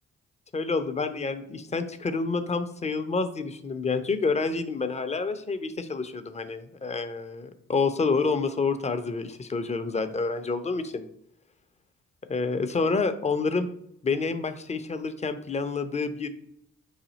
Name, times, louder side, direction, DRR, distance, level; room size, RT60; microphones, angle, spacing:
voice 1, 0.5-11.1 12.3-13.7 14.0-16.3, left 4 dB, 15° left, 9 dB, 0.5 m, -28 dB
4.9 x 2.7 x 4.0 m, 0.74 s
figure-of-eight pair, 40°, 40 cm